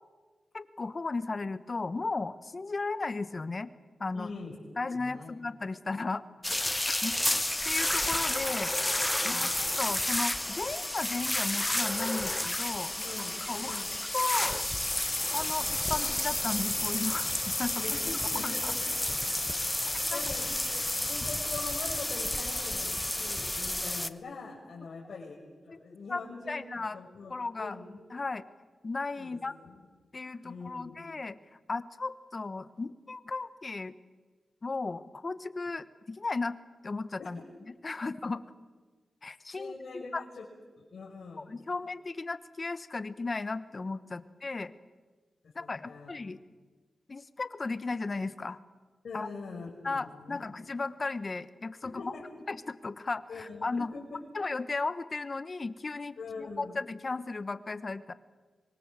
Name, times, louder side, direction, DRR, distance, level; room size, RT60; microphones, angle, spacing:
voice 1, 0.5-3.7 4.0-4.3 4.8-6.2 6.9-7.1 7.6-8.7 9.2-12.9 13.5-13.8 14.1-14.7 15.3-17.8 18.4-18.7 20.1-20.3 25.7-25.8 26.1-26.2 26.5-27.0 27.3-27.8 28.1-28.4 28.8-29.5 30.1-31.4 31.7-33.9 34.6-36.6 36.8-37.4 37.7-38.4 39.2-40.2 41.4-44.7 45.5-46.4 47.1-48.6 49.1-49.3 49.8-52.1 52.5-53.9 54.3-58.1, left 3 dB, 40° left, 13 dB, 1.3 m, -35 dB
voice 2, 4.1-4.5 4.9-5.3 9.3-9.5 13.0-13.3 13.6-13.9 17.8-18.8 20.1-20.4 20.7-20.8 21.1-25.3 25.6-28.0 29.2-29.4 29.6-29.8 30.4-31.0 37.2-37.3 39.5-40.4 40.8-41.5 45.6-46.1 49.0-50.7 51.8-52.2 53.3-53.6 53.9-54.0 56.2-56.8, left 4 dB, 70° left, -4 dB, 5.3 m, -43 dB
sound 1, 6.4-24.1, left 1 dB, 15° left, 0.9 m, -31 dB
25.0 x 23.0 x 7.6 m, 1.4 s
cardioid pair, 75°, 0 cm